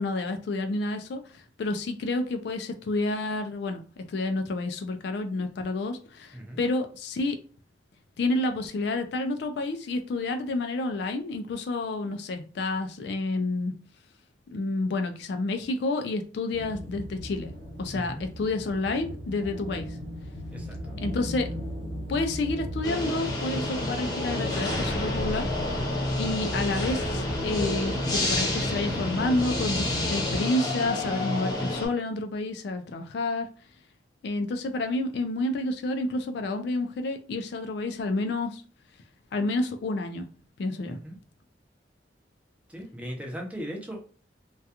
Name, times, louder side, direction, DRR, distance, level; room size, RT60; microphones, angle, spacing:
voice 1, 0.0-3.8 4.1-7.4 8.2-13.7 14.5-17.5 17.8-20.0 21.0-21.5 22.1-25.5 26.2-33.5 34.2-38.6 39.3-40.3 40.6-41.0, left 2 dB, 65° left, 6 dB, 0.3 m, -29 dB
sound 1, 16.5-30.4, equal, 85° right, 0.8 m, -36 dB
voice 2, 20.5-21.0 40.9-41.1 42.7-44.1, equal, 10° right, 0 dB, 0.5 m, -38 dB
sound 2, 22.8-31.9, left 1 dB, 20° left, 0.8 m, -29 dB
2.3 x 2.2 x 2.8 m, 0.38 s
head